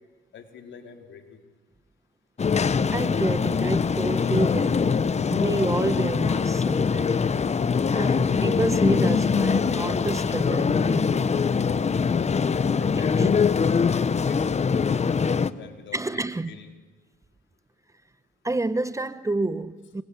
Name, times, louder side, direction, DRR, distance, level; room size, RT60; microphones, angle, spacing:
voice 1, 0.3-1.4 12.4-13.4 13.9-16.7 19.2-19.3, left 6 dB, 70° left, 4.0 m, -45 dB
sound 1, 2.4-15.5, left 5 dB, 35° left, 1.0 m, -23 dB
voice 2, 2.9-7.4 7.9-11.3 12.9-13.3 15.9-16.5 18.4-20.0, right 2 dB, 15° right, 0.9 m, -29 dB
27.5 x 23.0 x 8.6 m
cardioid pair, 90°, 20 cm